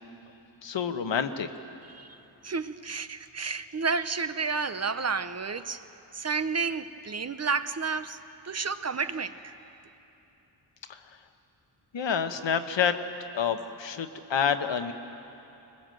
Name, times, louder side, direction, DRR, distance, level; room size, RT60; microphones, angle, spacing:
voice 1, 0.6-1.5 10.9-11.2 11.9-13.0 13.3-14.9, left 7 dB, 80° left, 8 dB, 1.2 m, -28 dB
voice 2, 2.4-5.8 6.1-8.2 8.4-9.6, right 5 dB, 35° right, 11 dB, 0.7 m, -31 dB
21.5 x 20.5 x 7.7 m, 2.9 s
wide cardioid pair, 100°, 43 cm